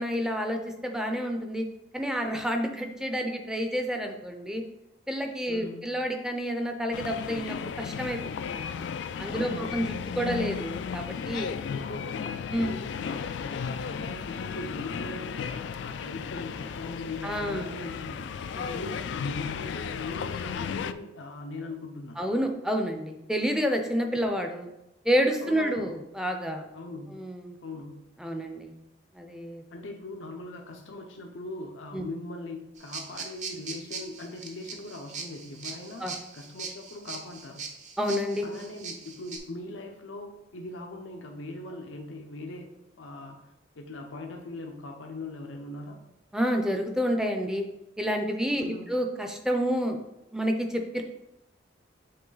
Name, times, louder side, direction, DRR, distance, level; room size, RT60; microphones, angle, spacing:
voice 1, 0.0-1.6 1.9-4.6 5.1-8.9 9.2-11.6 12.5-12.7 17.2-17.7 18.5-18.7 22.2-24.7 25.0-26.6 27.1-27.6 28.2-28.7 29.1-29.6 31.9-32.1 36.0-36.1 38.0-38.5 46.3-47.7 48.0-50.0 50.3-51.0, equal, 5° right, 4 dB, 0.6 m, -29 dB
voice 2, 5.5-5.9 9.3-9.8 10.1-10.4 11.7-22.2 25.4-25.9 26.7-27.2 27.6-28.0 29.7-36.1 36.3-37.6 38.4-43.5 43.8-46.0 48.5-48.9, left 2 dB, 80° left, 2 dB, 0.7 m, -40 dB
sound 1, 6.9-20.9, left 6 dB, 65° left, 0.3 m, -35 dB
sound 2, 32.8-39.4, right 5 dB, 40° right, 0.8 m, -40 dB
7.7 x 3.1 x 3.9 m, 0.90 s
head